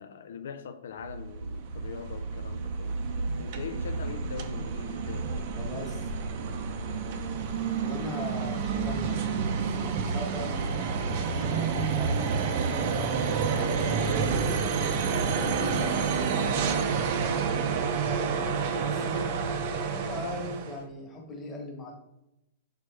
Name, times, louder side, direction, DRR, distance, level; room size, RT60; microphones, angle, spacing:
voice 1, 0.0-3.0 3.4-5.5, left 7 dB, 75° left, 0.4 m, -42 dB
sound 1, 1.0-20.8, right 5 dB, 40° right, 0.6 m, -29 dB
voice 2, 5.6-6.1 7.8-10.9 11.3-12.9 13.4-18.2 18.8-19.3 19.9-21.9, left 2 dB, 10° left, 1.2 m, -40 dB
6.1 x 4.7 x 3.3 m
hypercardioid pair, 170°, 0 cm